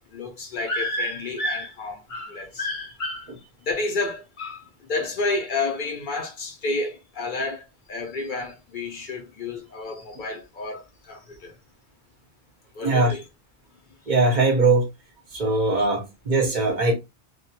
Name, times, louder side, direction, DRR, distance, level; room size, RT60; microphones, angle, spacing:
voice 1, 0.0-3.3 3.6-11.5 12.7-13.2, left 2 dB, 60° left, 0.6 m, -30 dB
voice 2, 12.8-13.1 14.1-14.9 15.3-16.9, right 3 dB, 50° right, 0.8 m, -20 dB
2.1 x 2.1 x 2.7 m
omnidirectional pair, 1.0 m